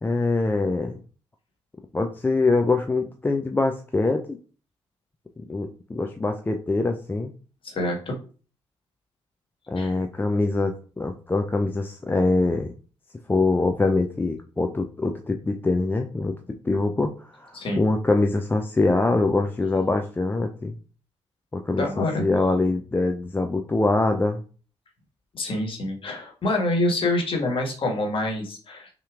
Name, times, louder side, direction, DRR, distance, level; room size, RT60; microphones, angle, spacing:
voice 1, 0.0-0.9 1.9-4.4 5.4-7.3 9.7-12.7 13.3-16.4 16.6-20.8 21.5-21.9 22.2-24.4, left 3 dB, 15° left, 4 dB, 0.4 m, -24 dB
voice 2, 7.6-8.2 9.8-10.0 17.5-17.8 21.7-22.2 25.3-28.9, left 2 dB, 35° left, 1 dB, 1.5 m, -26 dB
5.7 x 2.9 x 2.4 m, 0.39 s
figure-of-eight pair, 40°, 14 cm